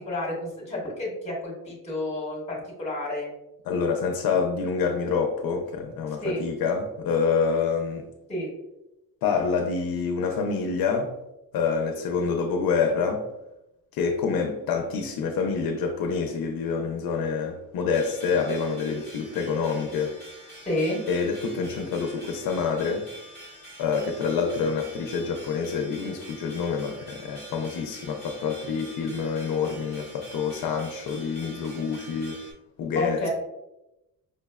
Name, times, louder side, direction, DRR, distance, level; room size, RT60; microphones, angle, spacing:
voice 1, 0.0-3.3 6.2-6.4 8.3-8.5 20.6-21.0 32.9-33.3, left 1 dB, 20° left, 1.0 m, -30 dB
voice 2, 3.7-8.1 9.2-11.1 11.5-13.3 13.9-20.2 21.1-23.1 23.8-32.4 32.8-33.3, left 5 dB, 70° left, 0.5 m, -27 dB
sound 1, 17.9-32.5, right 1 dB, 30° right, 0.8 m, -46 dB
5.2 x 2.1 x 2.2 m
cardioid pair, 165°, 37 cm